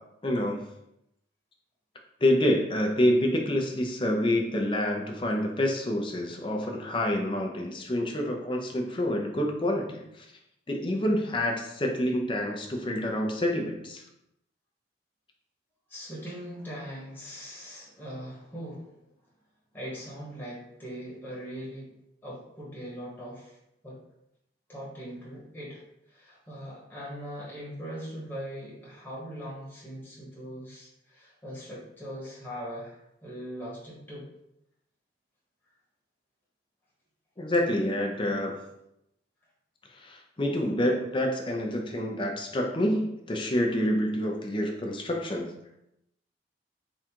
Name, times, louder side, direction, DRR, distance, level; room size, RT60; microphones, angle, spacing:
voice 1, 0.2-0.6 2.2-10.3 10.7-14.0 37.4-38.6 40.0-45.5, left 1 dB, 30° left, 1 dB, 0.6 m, -27 dB
voice 2, 15.9-18.9 19.7-21.9 22.2-23.6 23.8-24.0 24.7-25.8 26.1-34.3, equal, 10° left, -7 dB, 1.2 m, -40 dB
3.7 x 2.4 x 4.4 m, 0.81 s
head